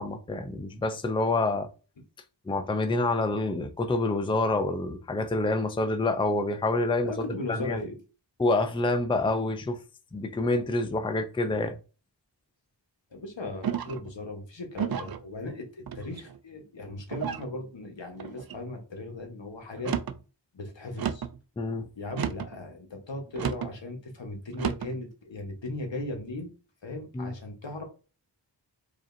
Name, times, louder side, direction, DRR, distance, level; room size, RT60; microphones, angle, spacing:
voice 1, 0.0-1.7 2.5-7.1 7.5-7.8 8.4-9.8 10.1-11.8 21.6-21.9 27.1-27.3, left 2 dB, 10° left, 0.5 m, -27 dB
voice 2, 7.0-8.0 13.1-20.0 20.5-21.3 22.0-26.5 26.8-27.8, left 2 dB, 75° left, 1.2 m, -37 dB
sound 1, 13.6-14.1 14.8-15.2 15.9-16.4 17.1-17.5 18.2-18.6 19.7-20.2 21.0-21.4 22.1-22.6 23.4-23.7 24.5-24.9, right 8 dB, 55° right, 0.5 m, -32 dB
4.9 x 2.9 x 2.6 m
wide cardioid pair, 40°, 44 cm